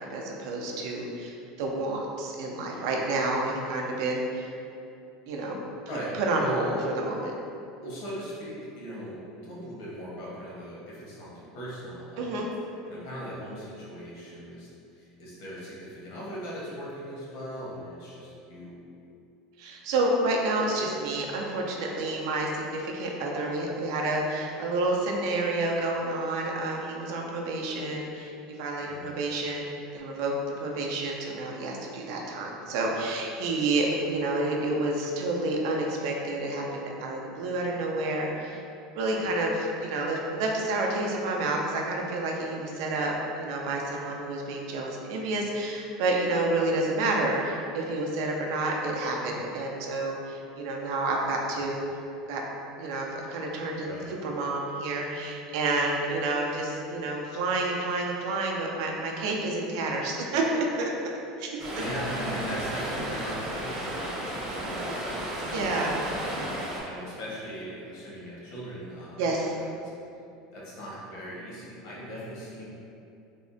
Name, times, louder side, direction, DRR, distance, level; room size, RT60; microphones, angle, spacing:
voice 1, 0.0-4.5 5.3-5.6 6.2-6.7 7.0-7.3 12.2-12.5 19.6-38.6 38.9-51.8 52.3-52.4 52.8-53.9 54.2-60.9 61.4-61.5 61.7-61.9 65.5-66.0 69.2-69.6, right 2 dB, 75° right, 0 dB, 0.4 m, -29 dB
voice 2, 6.4-6.8 7.8-12.5 12.9-18.8 28.8-29.1 39.1-39.4 53.8-54.2 61.7-69.9 70.5-72.7, equal, 75° left, -7 dB, 1.0 m, -39 dB
Stream, 61.6-66.8, right 1 dB, 40° right, 0.8 m, -33 dB
3.5 x 2.1 x 2.5 m, 2.7 s
supercardioid pair, 145°, 2 cm